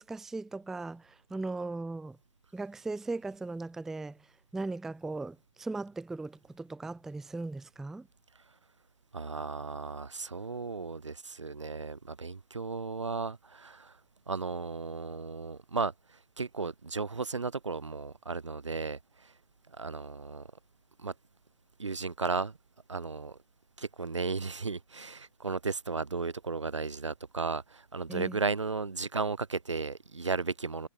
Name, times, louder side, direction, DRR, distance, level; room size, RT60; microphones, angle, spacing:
voice 1, 0.0-2.2 2.5-4.2 4.5-8.1 28.1-28.4, right 3 dB, ahead, 0.3 m, -38 dB
voice 2, 9.1-13.9 14.3-15.9 16.4-19.3 19.7-20.5 21.0-21.1 21.8-22.6 22.9-23.4 23.8-30.9, right 4 dB, 80° right, 1.2 m, -35 dB
figure-of-eight pair, 120°, 15 cm